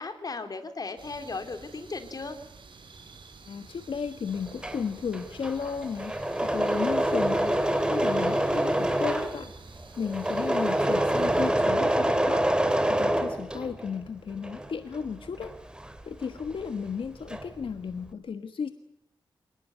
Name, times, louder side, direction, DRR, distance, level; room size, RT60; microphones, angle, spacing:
voice 1, 0.0-2.4, left 3 dB, 45° left, 8 dB, 3.2 m, -36 dB
sound 1, 1.0-11.5, right 4 dB, 60° right, 5.5 m, -50 dB
voice 2, 3.5-15.5 16.0-18.7, left 6 dB, 70° left, 9 dB, 1.4 m, -34 dB
Engine / Mechanisms, 4.4-14.0 14.3-16.7 16.9-17.6, right 1 dB, 10° right, 2.3 m, -26 dB
26.5 x 18.5 x 9.5 m, 0.76 s
wide cardioid pair, 120°, 9 cm